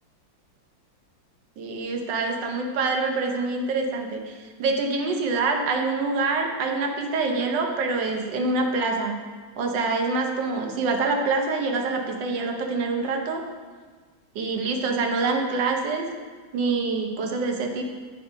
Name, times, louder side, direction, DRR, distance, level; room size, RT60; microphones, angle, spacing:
voice 1, 1.6-9.2 9.6-13.4 14.3-16.0 16.5-17.8, right 3 dB, 70° right, 3 dB, 1.4 m, -26 dB
9.0 x 4.5 x 5.0 m, 1.5 s
omnidirectional pair, 2.1 m